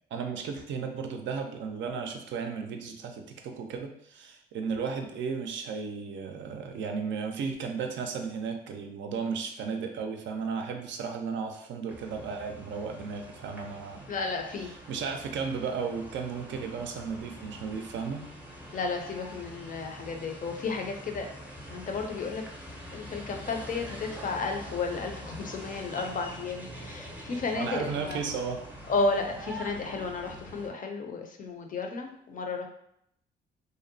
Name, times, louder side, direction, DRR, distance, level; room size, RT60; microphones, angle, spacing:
voice 1, 0.1-14.1 14.9-18.2 27.2-28.6, right 5 dB, 70° right, 4 dB, 0.4 m, -34 dB
sound 1, 11.9-30.7, equal, 5° right, 0.5 m, -45 dB
voice 2, 14.1-14.7 18.7-21.3 21.7-22.4 22.9-28.2 28.9-32.7, left 3 dB, 40° left, 4 dB, 0.5 m, -33 dB
2.7 x 2.0 x 2.6 m, 0.73 s
cardioid pair, 90°, 20 cm